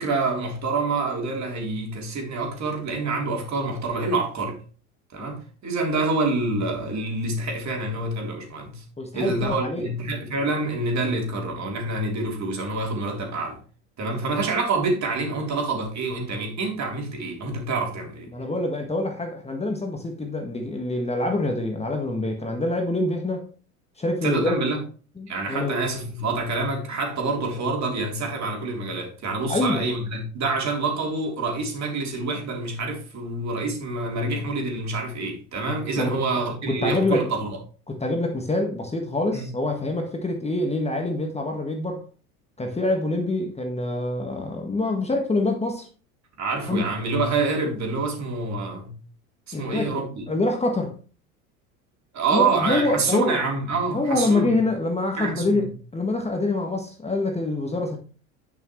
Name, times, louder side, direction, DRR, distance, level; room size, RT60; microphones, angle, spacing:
voice 1, 0.0-4.6 5.1-8.8 9.1-13.6 14.0-18.3 24.2-24.8 25.3-37.5 39.3-39.5 46.4-49.0 49.5-50.2 52.1-54.5 55.2-55.7, right 3 dB, 40° right, 3.7 m, -27 dB
voice 2, 9.0-9.9 18.3-23.5 24.0-24.6 25.2-25.9 29.5-29.8 36.0-36.2 36.7-37.3 37.9-42.0 42.6-45.9 46.7-46.8 49.5-50.9 52.3-53.4 53.9-58.0, left 2 dB, 15° left, 1.7 m, -25 dB
10.5 x 6.5 x 3.2 m
hypercardioid pair, 85°, 43 cm